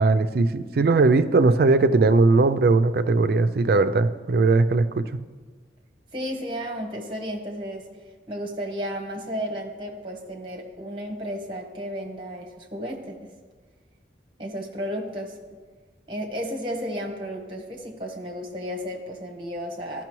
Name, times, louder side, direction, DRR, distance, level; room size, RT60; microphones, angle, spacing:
voice 1, 0.0-5.1, right 3 dB, 55° right, 11 dB, 0.4 m, -19 dB
voice 2, 6.1-7.9 8.3-13.3 14.4-15.3 16.1-20.0, equal, 25° right, 1 dB, 1.1 m, -33 dB
13.0 x 5.9 x 3.1 m, 1.4 s
head